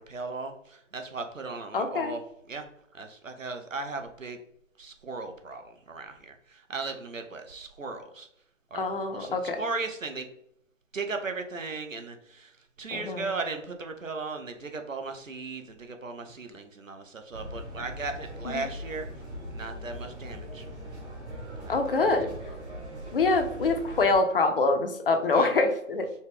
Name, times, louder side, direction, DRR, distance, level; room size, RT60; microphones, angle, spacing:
voice 1, 0.0-2.2 2.5-2.6 2.9-4.4 4.8-8.3 8.7-10.3 10.9-12.5 12.8-19.1 19.5-20.6 21.6-22.1 25.3-25.5, right 3 dB, 85° right, 6 dB, 0.8 m, -37 dB
voice 2, 1.7-2.1 8.7-9.6 12.9-13.3 18.4-18.6 21.7-22.3 23.1-26.1, left 3 dB, 45° left, 6 dB, 0.6 m, -25 dB
sound 1, 17.3-24.2, equal, 60° right, 1.3 m, -40 dB
4.3 x 2.3 x 3.4 m, 0.72 s
figure-of-eight pair, 135°, 38 cm